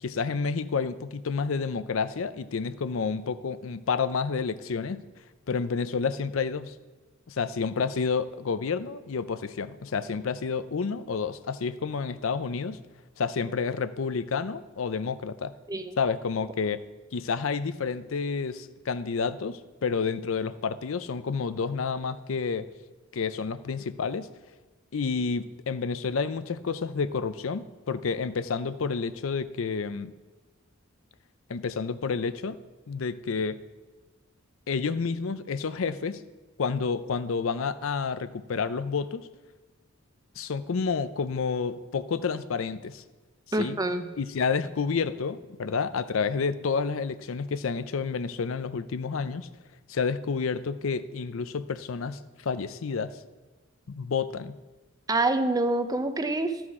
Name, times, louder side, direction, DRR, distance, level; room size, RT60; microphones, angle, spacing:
voice 1, 0.0-5.0 5.5-6.7 7.3-12.8 13.2-15.5 16.0-16.8 17.1-22.7 23.1-24.3 24.9-30.1 31.5-32.6 32.9-33.6 34.7-36.2 36.6-39.3 40.4-43.0 43.6-43.8 44.2-49.5 49.9-53.2 53.9-54.6, left 5 dB, 80° left, 13 dB, 0.5 m, -29 dB
voice 2, 43.5-44.1 55.1-56.6, right 2 dB, 20° right, 8 dB, 0.6 m, -26 dB
12.5 x 6.2 x 4.8 m, 1.2 s
head